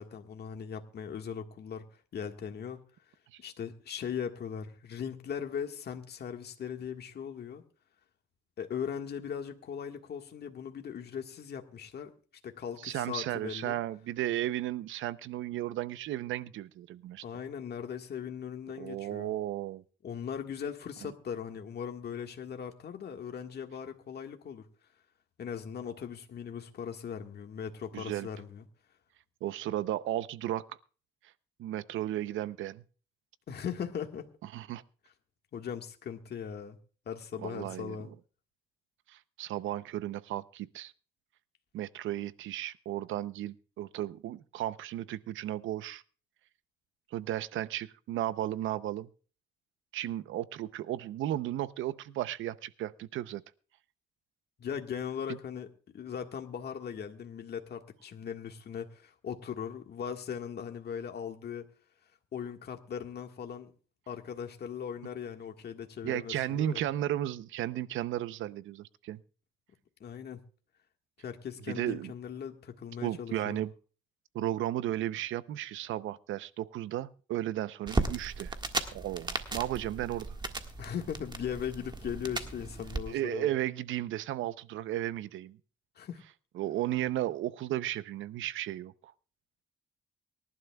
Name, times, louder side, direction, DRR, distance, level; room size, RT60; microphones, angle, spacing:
voice 1, 0.0-1.9 2.1-2.8 3.4-7.6 8.6-12.1 12.4-13.8 17.2-19.3 20.0-24.7 25.4-28.6 33.5-34.3 35.5-36.8 37.1-38.1 54.6-55.7 55.9-61.7 62.3-63.7 64.1-66.8 70.0-70.4 71.2-73.6 80.8-83.5 86.0-86.2, left 7 dB, 55° left, 4 dB, 1.6 m, -39 dB
voice 2, 12.8-17.2 18.8-19.8 21.0-21.1 27.9-28.3 29.4-30.8 31.6-32.8 34.5-34.8 37.4-38.1 39.1-40.9 41.7-46.0 47.1-49.1 49.9-53.4 55.3-55.4 66.0-69.2 71.7-72.1 73.0-73.7 74.3-78.6 78.9-80.3 83.1-85.6 86.5-89.1, right 13 dB, 80° right, 16 dB, 0.7 m, -34 dB
sound 1, 77.9-83.0, right 3 dB, 20° right, 1.6 m, -36 dB
24.0 x 11.5 x 2.3 m, 0.38 s
cardioid pair, 90°, 20 cm